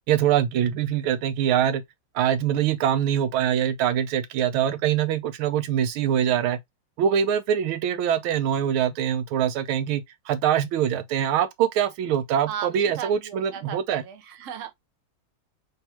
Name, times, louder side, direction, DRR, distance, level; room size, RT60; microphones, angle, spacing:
voice 1, 0.1-1.8 2.1-6.6 7.0-14.0, right 9 dB, 80° right, 1.4 m, -24 dB
voice 2, 12.5-14.7, right 9 dB, 60° right, 0.8 m, -36 dB
3.5 x 3.4 x 2.8 m
omnidirectional pair, 2.3 m